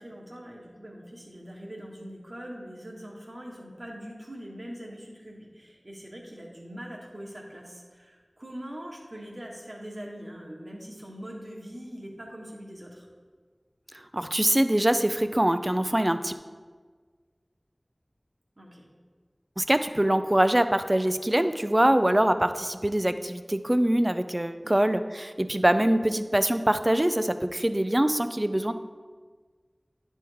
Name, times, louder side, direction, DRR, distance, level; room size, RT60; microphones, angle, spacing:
voice 1, 0.0-13.0 18.6-18.9 24.6-24.8, equal, 60° right, -3 dB, 1.5 m, -42 dB
voice 2, 14.1-16.3 19.6-28.7, right 1 dB, 30° right, 10 dB, 0.4 m, -24 dB
10.0 x 3.5 x 4.6 m, 1.5 s
wide cardioid pair, 40°, 0 cm